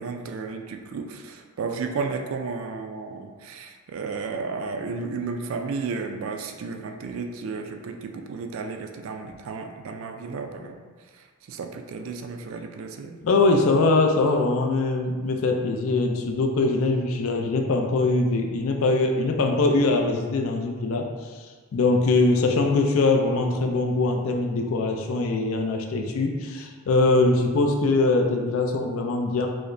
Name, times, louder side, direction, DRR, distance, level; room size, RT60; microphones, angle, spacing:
voice 1, 0.0-10.8 11.5-13.2, right 4 dB, 65° right, 5 dB, 0.3 m, -33 dB
voice 2, 13.2-21.1 21.7-29.5, left 3 dB, 65° left, 2 dB, 0.4 m, -22 dB
4.8 x 2.1 x 2.6 m, 1.5 s
head